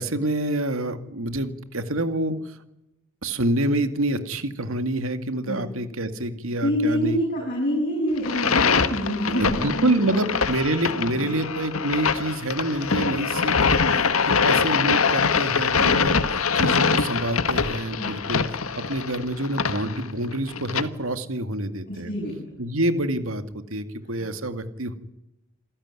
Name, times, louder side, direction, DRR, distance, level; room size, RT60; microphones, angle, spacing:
voice 1, 0.0-2.6 3.2-7.2 9.3-13.8 14.3-18.4 18.8-22.1 22.6-25.0, right 1 dB, 75° right, 10 dB, 2.3 m, -27 dB
voice 2, 6.6-10.3 10.9-11.3 13.7-14.0 14.3-14.4 18.0-18.2 21.9-22.6 24.2-24.3, equal, 40° left, -1 dB, 8.0 m, -27 dB
sound 1, 8.2-20.8, left 5 dB, 90° left, 1.6 m, -23 dB
27.5 x 16.0 x 9.8 m, 0.86 s
head